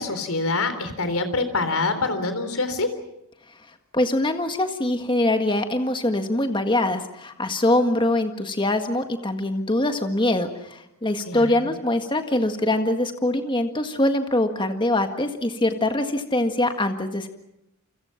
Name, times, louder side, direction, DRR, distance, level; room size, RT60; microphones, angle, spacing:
voice 1, 0.0-2.9 11.3-11.7, left 3 dB, 75° left, 9 dB, 3.8 m, -25 dB
voice 2, 3.9-17.3, left 1 dB, 20° left, 6 dB, 1.7 m, -23 dB
29.0 x 25.5 x 5.9 m, 0.85 s
head